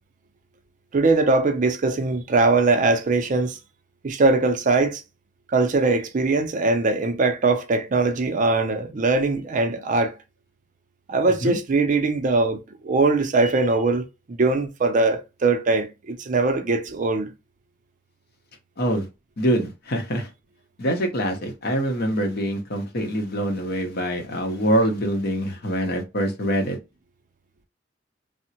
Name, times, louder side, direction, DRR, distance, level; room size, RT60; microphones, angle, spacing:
voice 1, 0.9-3.5 4.0-5.0 5.5-10.1 11.1-17.3, right 3 dB, 40° right, 0.4 m, -21 dB
voice 2, 19.4-20.3 20.8-26.8, equal, 55° left, 0.8 m, -24 dB
3.4 x 2.0 x 2.8 m
head